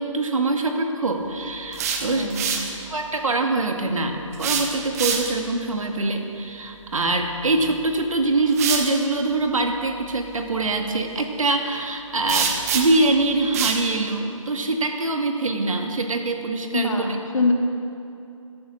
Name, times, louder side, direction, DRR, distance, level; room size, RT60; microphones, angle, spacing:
voice 1, 0.0-2.3 2.9-17.1, right 2 dB, 75° right, 4 dB, 1.9 m, -24 dB
sound 1, 1.5-2.7 4.3-5.5 7.6-7.7 8.5-8.9 12.3-13.1 13.5-13.8, right 6 dB, 25° right, 1.2 m, -25 dB
voice 2, 2.1-2.6 16.7-17.5, left 3 dB, 70° left, 2 dB, 2.3 m, -24 dB
12.0 x 12.0 x 6.4 m, 2.7 s
figure-of-eight pair, 155°, 18 cm